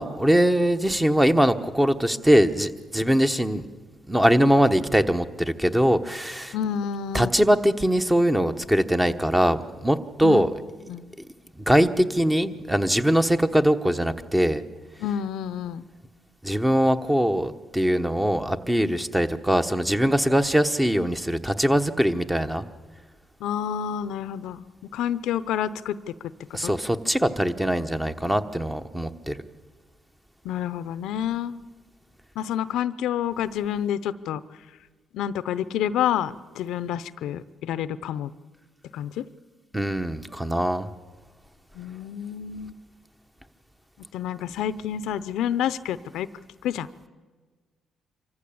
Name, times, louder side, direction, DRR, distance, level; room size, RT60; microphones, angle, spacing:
voice 1, 0.0-3.7 4.1-6.5 7.1-10.5 11.6-14.6 16.4-22.6 26.5-29.4 39.7-40.9, equal, 10° right, 9 dB, 1.1 m, -22 dB
voice 2, 6.5-7.3 10.2-10.5 10.9-11.1 15.0-15.9 23.4-26.0 26.6-26.7 30.4-31.6 32.4-34.4 35.1-38.3 38.9-39.2 41.7-42.7 44.1-46.3 46.6-46.9, left 9 dB, 85° left, 16 dB, 0.7 m, -28 dB
25.0 x 14.5 x 8.6 m, 1.4 s
cardioid pair, 90°, 0 cm